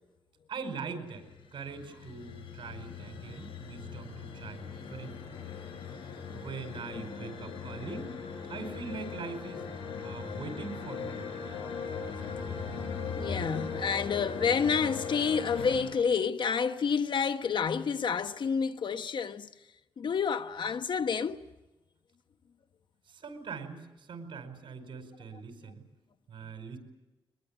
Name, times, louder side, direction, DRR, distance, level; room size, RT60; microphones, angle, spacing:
voice 1, 0.5-1.2 1.5-5.3 6.3-8.1 8.5-9.7 10.0-11.3 23.1-25.8 26.3-26.8, right 5 dB, 75° right, 5.0 m, -42 dB
sound 1, 1.2-15.9, left 5 dB, 90° left, 5.3 m, -39 dB
voice 2, 13.1-19.5 20.0-21.4, left 6 dB, 65° left, 1.2 m, -29 dB
23.0 x 21.5 x 8.9 m
cardioid pair, 75°, 9 cm